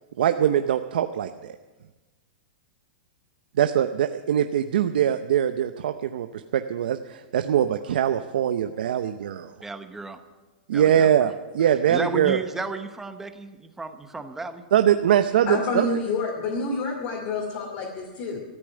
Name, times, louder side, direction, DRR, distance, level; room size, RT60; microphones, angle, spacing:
voice 1, 0.2-1.6 3.6-6.3 6.5-9.5 10.7-12.4 14.7-15.8, right 10 dB, 75° right, 8 dB, 0.7 m, -22 dB
voice 2, 9.6-10.2 10.7-11.3 11.9-14.6, right 3 dB, 5° right, 8 dB, 0.9 m, -34 dB
voice 3, 15.5-18.4, left 3 dB, 45° left, -1 dB, 2.5 m, -28 dB
14.0 x 8.6 x 9.7 m, 1.2 s
supercardioid pair, 155°, 5 cm